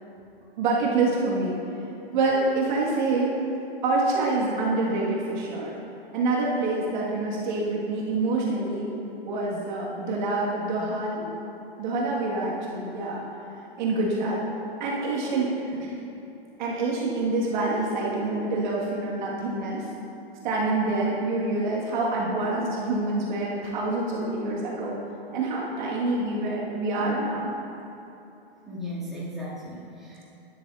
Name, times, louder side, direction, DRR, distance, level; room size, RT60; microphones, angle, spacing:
voice 1, 0.6-1.6 2.1-3.3 3.8-5.7 6.1-8.9 9.2-11.3 11.8-13.2 13.8-14.4 14.8-16.0 16.6-19.9 20.4-25.0 25.3-27.5, right 2 dB, 45° right, -4 dB, 1.6 m, -26 dB
voice 2, 28.7-30.2, equal, ahead, -11 dB, 2.1 m, -36 dB
12.5 x 9.9 x 2.5 m, 2.8 s
hypercardioid pair, 150°, 32 cm